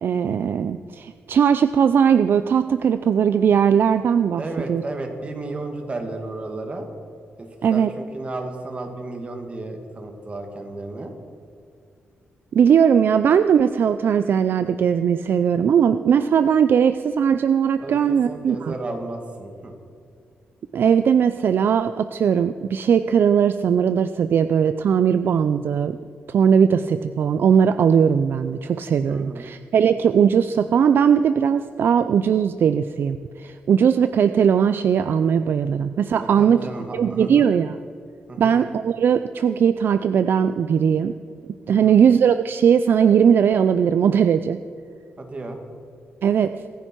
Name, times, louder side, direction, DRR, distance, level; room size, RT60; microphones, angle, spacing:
voice 1, 0.0-4.4 4.7-4.8 7.6-7.9 12.5-18.7 20.7-26.0 26.3-36.6 36.9-37.8 38.4-41.1 41.7-44.6 46.2-46.5, right 7 dB, 60° right, 11 dB, 0.4 m, -19 dB
voice 2, 4.4-6.9 7.4-11.1 17.8-19.7 29.1-29.5 36.2-37.5 38.3-38.6 41.7-42.0 45.2-45.6, right 2 dB, 30° right, 4 dB, 2.2 m, -33 dB
25.0 x 10.0 x 4.6 m, 2.3 s
wide cardioid pair, 130°, 4 cm